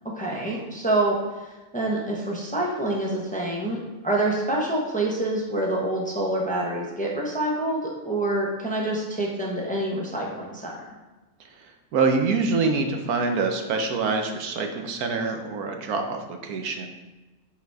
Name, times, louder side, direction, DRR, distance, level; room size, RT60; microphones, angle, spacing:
voice 1, 0.1-3.8 4.0-10.7, right 2 dB, 5° left, -2 dB, 0.8 m, -26 dB
voice 2, 11.9-16.9, right 4 dB, 80° right, 4 dB, 1.3 m, -25 dB
6.8 x 4.1 x 4.7 m, 1.2 s
omnidirectional pair, 1.6 m